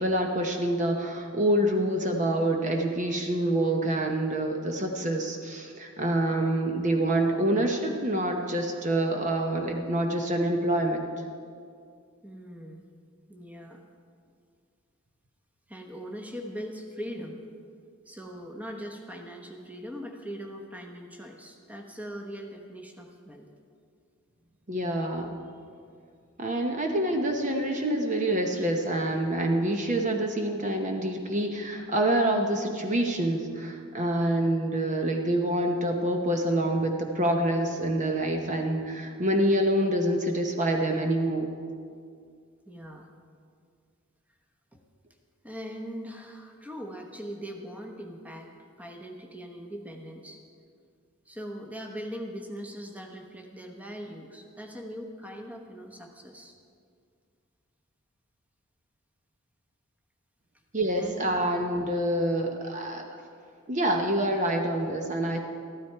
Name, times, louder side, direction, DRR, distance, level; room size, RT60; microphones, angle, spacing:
voice 1, 0.0-11.1 24.7-25.3 26.4-41.5 60.7-63.1 63.7-65.4, right 1 dB, 35° right, 3 dB, 0.9 m, -26 dB
voice 2, 12.2-12.9 13.3-13.8 15.7-17.4 18.1-23.5 34.2-34.4 42.7-43.1 44.7-44.8 45.4-48.5 48.8-50.4 51.3-56.5 61.0-61.4 62.4-62.5, equal, 5° right, 2 dB, 1.0 m, -41 dB
14.0 x 12.5 x 4.6 m, 2.3 s
head